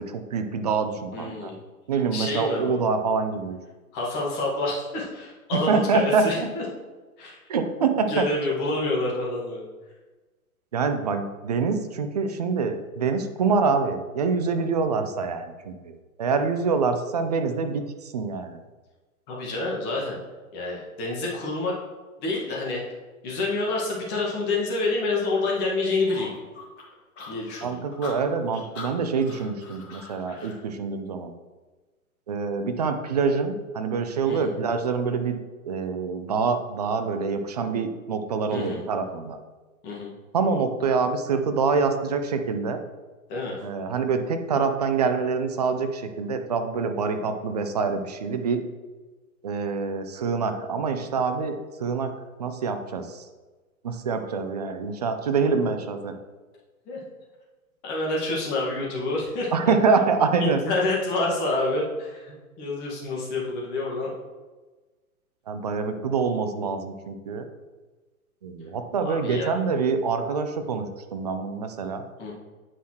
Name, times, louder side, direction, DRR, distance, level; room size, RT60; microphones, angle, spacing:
voice 1, 0.0-1.5 1.9-3.6 5.5-6.5 7.5-8.3 10.7-18.6 27.6-31.3 32.3-35.4 35.7-39.4 40.3-42.8 43.6-48.6 49.4-52.1 52.4-53.2 53.8-56.1 59.5-60.6 65.5-67.5 68.4-72.1, right 5 dB, 30° right, 7 dB, 0.4 m, -26 dB
voice 2, 1.1-1.6 2.1-2.8 3.9-6.6 7.2-7.4 8.1-9.7 19.3-20.2 20.5-21.7 22.2-22.8 23.2-26.3 27.3-27.8 34.3-34.6 38.5-38.8 39.8-40.1 43.3-43.6 56.9-57.0 57.8-59.7 60.4-64.1 69.0-69.5 72.2-72.3, left 2 dB, 25° left, -3 dB, 1.7 m, -28 dB
sound 1, 26.1-30.6, left 3 dB, 50° left, 2.0 m, -42 dB
8.1 x 5.7 x 3.0 m, 1.3 s
figure-of-eight pair, 120°, 44 cm